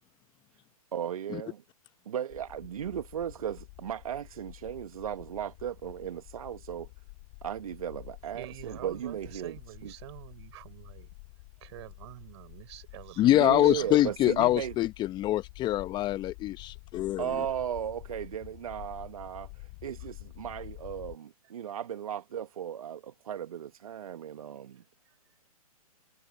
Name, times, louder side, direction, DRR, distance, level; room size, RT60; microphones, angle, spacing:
voice 1, 0.9-1.6 2.0-6.9 7.4-9.5 9.8-9.9 13.3-14.7 17.2-24.8, right 9 dB, 65° right, 1.6 m, -36 dB
sound 1, 2.3-21.2, left 31 dB, 40° left, 5.6 m, -49 dB
voice 2, 8.3-11.1 11.6-14.1 25.0-25.2, right 17 dB, 45° right, 6.3 m, -47 dB
voice 3, 13.2-17.2, left 14 dB, 25° left, 1.1 m, -25 dB
hypercardioid pair, 125°, 19 cm